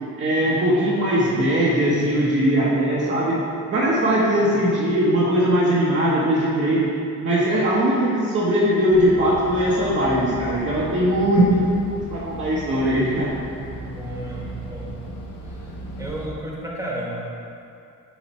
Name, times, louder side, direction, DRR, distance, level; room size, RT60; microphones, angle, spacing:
voice 1, 0.2-6.9 7.2-11.6 12.1-13.3, equal, 40° right, -6 dB, 0.9 m, -20 dB
sound 1, 8.9-16.3, right 1 dB, 50° left, 0.9 m, -36 dB
voice 2, 11.1-11.5 13.7-14.9 15.4-15.7 16.0-17.3, right 1 dB, 10° right, -4 dB, 1.0 m, -33 dB
7.2 x 4.3 x 4.1 m, 2.5 s
wide cardioid pair, 155°, 32 cm